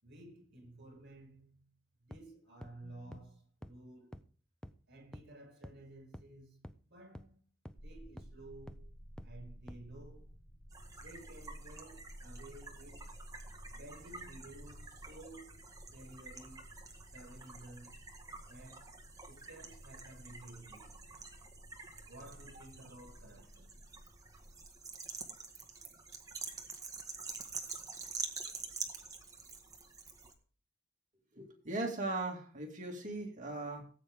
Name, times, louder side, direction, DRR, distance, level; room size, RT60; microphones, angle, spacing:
voice 1, 0.0-1.7 2.0-4.2 4.9-7.4 7.8-8.9 9.2-10.3 11.0-13.1 13.7-15.6 15.9-16.6 17.1-17.9 18.5-18.9 19.3-20.9 22.1-23.9, right 1 dB, 55° right, 6.2 m, -54 dB
sound 1, 2.1-2.2 2.6-2.7 3.1-3.2 3.6-3.7 4.1-4.2 4.6-4.7 5.1-5.2 5.6-5.7 6.1-6.2 6.6-6.7 7.1-7.2 7.7-7.8 8.2-8.3 8.7-8.8 9.2-9.3 9.7-9.8, equal, 5° left, 0.5 m, -47 dB
sound 2, 7.8-24.7, equal, 55° left, 2.1 m, -54 dB
sound 3, 10.7-30.3, right 4 dB, 20° right, 1.7 m, -48 dB
voice 2, 31.3-33.9, right 2 dB, 40° right, 2.4 m, -38 dB
18.5 x 8.6 x 3.6 m
head